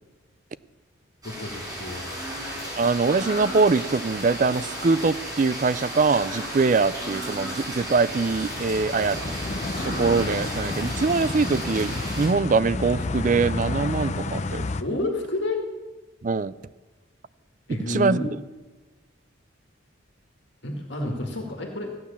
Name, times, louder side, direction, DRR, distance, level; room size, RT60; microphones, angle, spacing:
voice 1, 1.2-2.1 14.8-15.6 17.7-18.3 20.6-21.9, left 2 dB, 65° left, 1 dB, 2.0 m, -29 dB
sound 1, 1.2-12.3, equal, 20° right, 4.9 m, -34 dB
voice 2, 2.8-9.2 9.8-14.7 16.2-16.5 17.9-18.2, right 4 dB, 40° right, 16 dB, 0.4 m, -23 dB
sound 2, 7.6-14.8, left 3 dB, 35° left, 0.6 m, -31 dB
15.0 x 9.5 x 7.0 m, 1.2 s
head